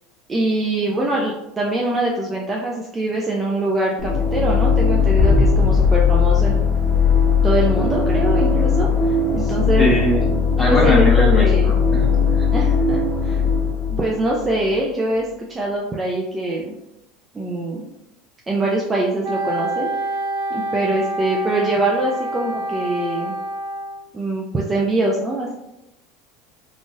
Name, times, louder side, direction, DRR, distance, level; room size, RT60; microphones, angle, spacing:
voice 1, 0.3-6.6 7.4-9.9 10.7-11.7 12.5-13.4 13.9-16.8 17.3-17.9 18.5-20.1 20.5-23.3 24.1-25.5, right 1 dB, 20° right, -2 dB, 0.5 m, -23 dB
sound 1, 4.0-14.8, left 6 dB, 30° left, 0.7 m, -18 dB
sound 2, 5.2-8.1, equal, 75° left, 0.4 m, -23 dB
voice 2, 9.4-10.3 10.6-12.1 12.3-12.5, equal, 10° left, -6 dB, 1.4 m, -21 dB
Wind instrument woodwind instrument, 19.2-24.0, right 1 dB, 70° right, 0.7 m, -27 dB
3.8 x 2.4 x 2.5 m, 0.90 s
supercardioid pair, 115°, 0 cm